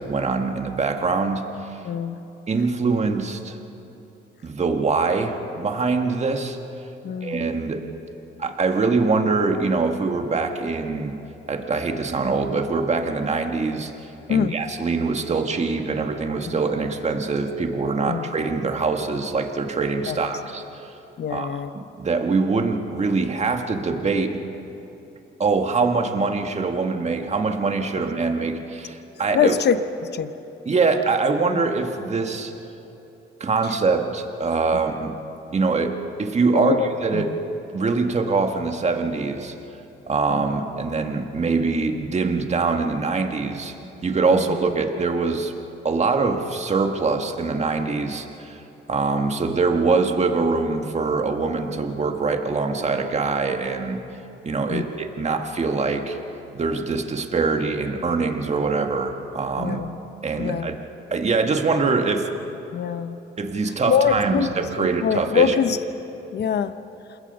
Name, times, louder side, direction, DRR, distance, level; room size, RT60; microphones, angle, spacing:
voice 1, 0.0-1.4 2.5-3.6 4.4-6.6 7.2-7.8 8.4-11.2 11.5-13.9 14.3-20.9 21.3-24.4 25.4-29.6 30.7-32.5 33.4-35.1 35.5-36.7 37.0-37.3 37.7-39.5 40.1-43.8 44.0-45.5 45.8-48.6 48.9-54.0 54.4-56.2 56.5-59.8 60.2-62.3 63.4-65.6, right 4 dB, 35° right, 4 dB, 1.8 m, -23 dB
voice 2, 1.8-2.2 7.0-7.5 14.3-14.6 16.5-16.6 18.1-18.2 20.1-20.2 21.2-21.7 29.3-29.8 30.0-30.3 31.5-31.6 36.5-36.9 37.1-37.2 40.3-40.4 44.3-44.4 54.7-54.8 59.6-60.0 60.4-60.7 62.7-63.2 63.9-65.8 66.3-66.7, left 7 dB, 55° left, 11 dB, 1.0 m, -23 dB
27.5 x 21.0 x 5.5 m, 2.9 s
cardioid pair, 90°, 20 cm